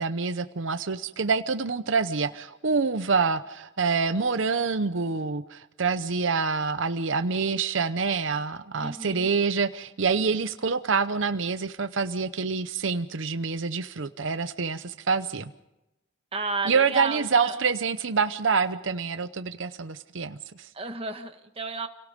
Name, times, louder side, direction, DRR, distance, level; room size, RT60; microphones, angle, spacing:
voice 1, 0.0-15.5 16.7-20.7, right 5 dB, 75° right, 11 dB, 0.8 m, -26 dB
voice 2, 8.8-9.3 16.3-17.6 20.7-21.9, right 4 dB, 30° right, 5 dB, 1.7 m, -32 dB
29.5 x 18.0 x 5.2 m, 0.92 s
head